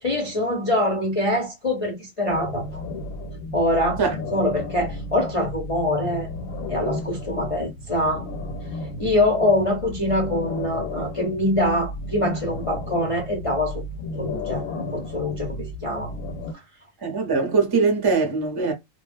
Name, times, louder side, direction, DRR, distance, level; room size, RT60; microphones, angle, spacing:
voice 1, 0.0-2.8 3.5-4.0 4.3-6.3 6.7-8.3 9.0-13.8 14.2-16.1, left 1 dB, 35° left, 0.5 m, -24 dB
sound 1, 2.3-16.5, left 2 dB, 90° left, 1.1 m, -33 dB
voice 2, 17.0-18.7, right 4 dB, 25° right, 0.5 m, -21 dB
2.3 x 2.1 x 3.3 m
omnidirectional pair, 1.5 m